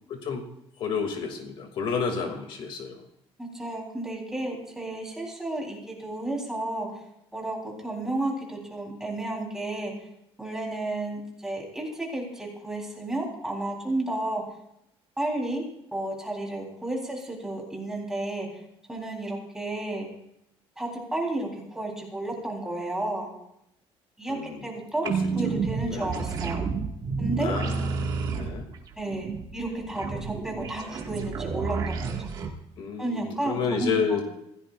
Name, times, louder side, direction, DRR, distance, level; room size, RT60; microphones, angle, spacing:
voice 1, 0.1-0.4 0.8-3.0 24.3-24.7 25.0-25.1 25.9-26.1 27.4-28.6 32.8-34.2, left 5 dB, 55° left, 3 dB, 2.4 m, -30 dB
voice 2, 3.4-7.0 7.3-9.9 10.4-14.4 15.2-15.6 15.9-18.6 18.9-20.1 20.8-23.3 24.2-25.1 25.4-26.6 27.2-27.5 29.0-32.3 33.0-34.2, right 2 dB, 5° right, -1 dB, 3.8 m, -32 dB
sound 1, 25.0-32.5, right 5 dB, 40° right, 1.9 m, -30 dB
26.0 x 16.0 x 2.5 m, 0.79 s
cardioid pair, 175°, 11 cm